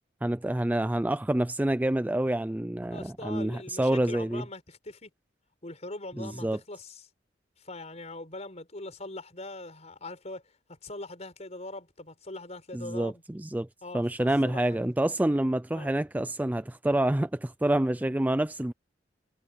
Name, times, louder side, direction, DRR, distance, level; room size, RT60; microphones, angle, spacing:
voice 1, 0.2-4.4 6.2-6.6 12.7-13.7 13.9-18.7, right 1 dB, 10° right, 0.4 m, -27 dB
voice 2, 2.9-5.1 5.6-7.1 7.6-13.2 13.8-14.9 15.7-15.9, left 2 dB, 40° left, 4.9 m, -42 dB
head